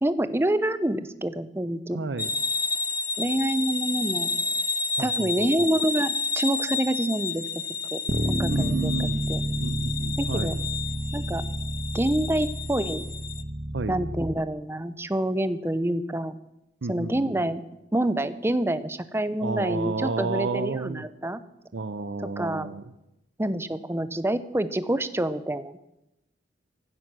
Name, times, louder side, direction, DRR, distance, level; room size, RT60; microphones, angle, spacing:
voice 1, 0.0-2.0 3.2-4.3 5.0-7.4 7.9-8.0 8.3-9.4 10.2-10.5 11.1-11.4 11.9-13.0 13.9-16.4 16.9-17.6 17.9-21.4 22.4-22.7 23.4-25.8, right 1 dB, 15° right, 13 dB, 0.7 m, -27 dB
voice 2, 1.9-2.3 5.0-5.7 8.5-9.2 9.6-10.6 13.7-14.0 16.8-17.5 19.4-21.0 21.7-22.8, right 3 dB, 70° right, 11 dB, 0.7 m, -31 dB
sound 1, 2.2-13.4, left 4 dB, 20° left, 0.7 m, -31 dB
Bass guitar, 8.1-14.3, right 1 dB, 45° right, 1.1 m, -30 dB
16.0 x 12.5 x 6.2 m, 0.88 s
head